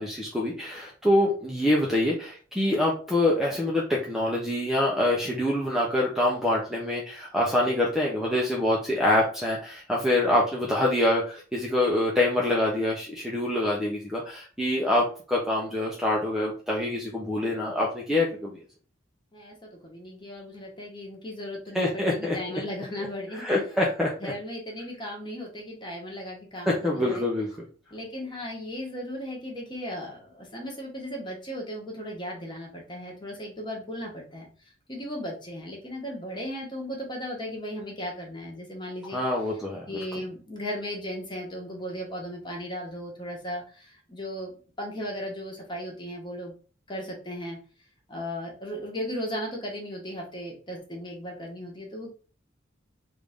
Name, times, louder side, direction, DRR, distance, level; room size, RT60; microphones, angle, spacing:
voice 1, 0.0-18.6 21.7-22.4 23.4-24.1 26.7-27.5 39.1-39.9, left 1 dB, ahead, -4 dB, 0.5 m, -25 dB
voice 2, 19.3-23.4 24.2-27.3 27.9-34.5 34.9-39.2 39.9-46.5 46.9-47.6 48.1-52.1, equal, 25° left, -1 dB, 1.1 m, -36 dB
3.4 x 2.5 x 3.4 m, 0.38 s
head